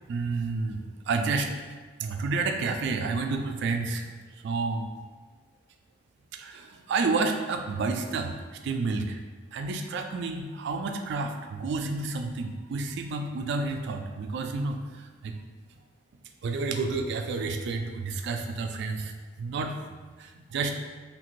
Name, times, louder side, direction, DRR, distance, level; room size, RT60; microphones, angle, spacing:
voice 1, 0.1-0.8 1.1-1.5 2.0-4.1 4.4-4.9 6.3-8.3 8.6-9.2 9.5-15.4 16.4-19.1 19.4-19.8 20.2-20.8, right 3 dB, 65° right, 5 dB, 0.3 m, -30 dB
2.8 x 2.5 x 3.0 m, 1.4 s
head